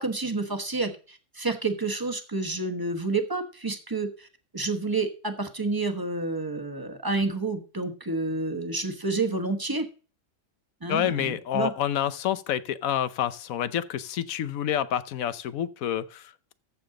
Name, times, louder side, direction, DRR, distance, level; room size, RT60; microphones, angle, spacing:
voice 1, 0.0-4.3 4.5-9.9 10.8-11.7, right 3 dB, 15° right, 1.1 m, -29 dB
voice 2, 10.9-16.5, left 10 dB, 90° left, 1.2 m, -28 dB
14.0 x 7.0 x 3.8 m
omnidirectional pair, 1.4 m